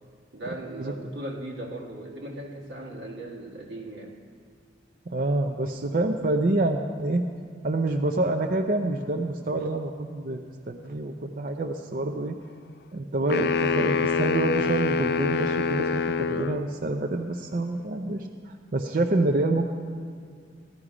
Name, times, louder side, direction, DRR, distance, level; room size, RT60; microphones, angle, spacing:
voice 1, 0.3-4.2, right 1 dB, 85° right, -1 dB, 1.5 m, -38 dB
voice 2, 5.1-7.2 7.6-12.4 12.9-19.7, right 2 dB, 45° right, 4 dB, 0.5 m, -27 dB
sound 1, 13.3-16.6, left 4 dB, 55° left, 0.3 m, -25 dB
15.0 x 11.0 x 4.9 m, 2.1 s
head